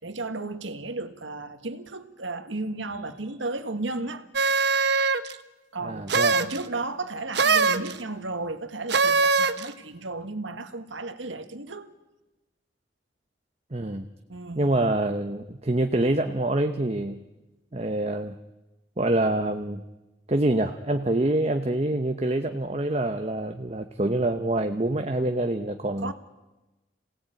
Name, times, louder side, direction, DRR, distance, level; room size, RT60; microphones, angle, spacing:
voice 1, 0.0-4.3 5.7-11.9 14.3-14.7 26.0-26.1, right 2 dB, 85° right, 1.6 m, -34 dB
sound 1, 4.3-5.3 6.1-6.6 7.3-7.9 8.9-9.7, right 4 dB, 60° right, 1.0 m, -22 dB
voice 2, 5.8-6.3 13.7-14.1 14.6-17.2 17.7-18.4 19.0-19.8 20.3-26.1, right 1 dB, 35° right, 0.9 m, -26 dB
27.0 x 17.5 x 9.0 m
head